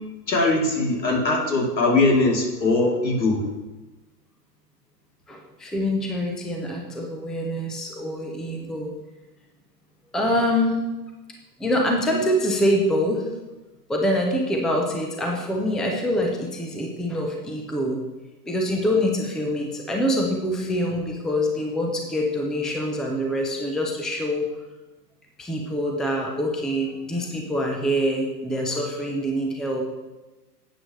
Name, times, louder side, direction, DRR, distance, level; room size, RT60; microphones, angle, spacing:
voice 1, 0.3-3.4, left 2 dB, 80° left, -2 dB, 3.3 m, -21 dB
voice 2, 5.3-8.9 10.1-10.8 11.6-13.3 13.9-18.0 18.5-24.4 25.4-29.8, equal, ahead, 1 dB, 0.6 m, -25 dB
12.0 x 8.4 x 3.2 m, 1.1 s
hypercardioid pair, 125°, 50 cm